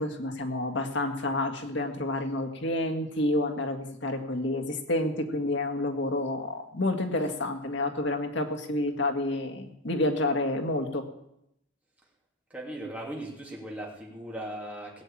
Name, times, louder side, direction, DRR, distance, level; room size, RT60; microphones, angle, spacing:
voice 1, 0.0-11.1, left 2 dB, 65° left, 4 dB, 1.8 m, -29 dB
voice 2, 12.5-15.0, right 1 dB, 10° right, -3 dB, 3.0 m, -38 dB
17.0 x 7.4 x 8.6 m, 0.81 s
head